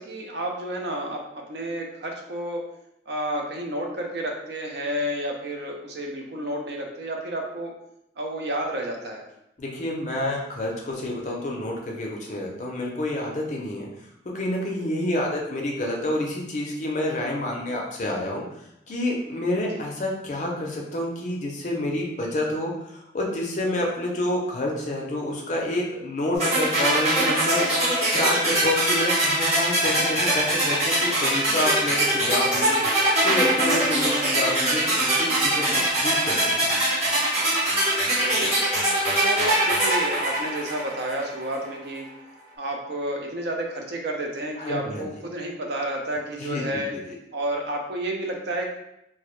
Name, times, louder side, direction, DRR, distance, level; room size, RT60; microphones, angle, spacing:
voice 1, 0.0-2.6 3.1-7.7 8.2-9.2 19.6-19.8 38.0-38.5 39.2-42.1 42.6-46.9 47.3-48.7, right 1 dB, 65° right, 1 dB, 0.4 m, -31 dB
voice 2, 9.6-13.9 14.3-18.4 18.9-27.7 28.1-36.7 44.6-45.0 46.4-47.1, left 1 dB, 40° left, -1 dB, 0.4 m, -28 dB
sound 1, 26.4-41.3, right 1 dB, 35° right, 0.9 m, -22 dB
2.1 x 2.0 x 2.9 m, 0.83 s
head